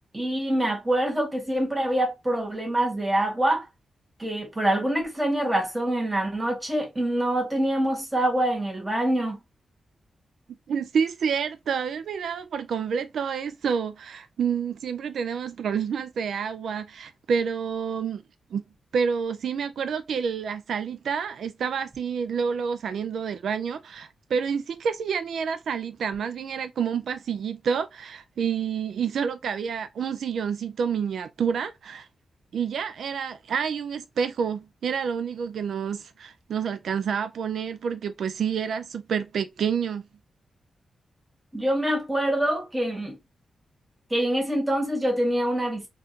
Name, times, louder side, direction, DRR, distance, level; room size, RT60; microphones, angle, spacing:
voice 1, 0.1-3.6 4.2-9.4 41.5-43.2 44.1-45.9, right 1 dB, 10° right, 1.2 m, -25 dB
voice 2, 10.7-18.2 18.5-18.6 18.9-32.1 32.5-40.0, right 6 dB, 75° right, 0.3 m, -28 dB
3.5 x 2.4 x 2.7 m
wide cardioid pair, 150°, 0 cm